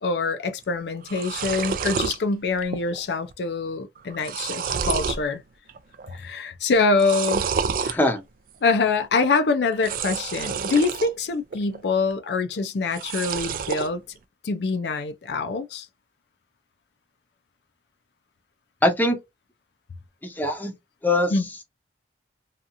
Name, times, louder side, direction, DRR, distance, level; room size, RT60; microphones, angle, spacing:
voice 1, 0.0-5.4 6.1-7.5 7.8-8.0 8.6-14.0 14.4-15.9 21.3-21.4, left 4 dB, 70° left, 0.4 m, -25 dB
sound 1, 0.6-0.7 1.0-2.2 2.6-3.0 3.3-3.4 4.0-5.2 5.7-6.2 6.9-8.0 9.7-11.1 11.5-12.1 12.8-13.9, right 6 dB, 50° right, 0.3 m, -29 dB
voice 2, 7.8-8.2 18.8-19.2 20.2-20.7 21.0-21.3, left 1 dB, 10° left, 0.6 m, -22 dB
2.8 x 2.4 x 2.5 m
head